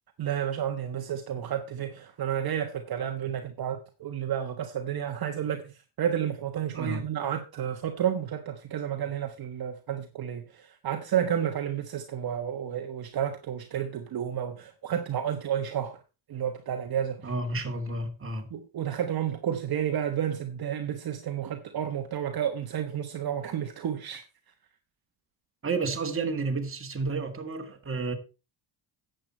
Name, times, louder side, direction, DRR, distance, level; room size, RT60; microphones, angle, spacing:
voice 1, 0.2-16.0 16.3-17.3 18.5-24.2, right 9 dB, 50° right, 1.3 m, -31 dB
voice 2, 17.2-18.5 25.6-28.1, right 3 dB, 25° right, 2.3 m, -31 dB
10.0 x 8.1 x 4.4 m
cardioid pair, 95°, 46 cm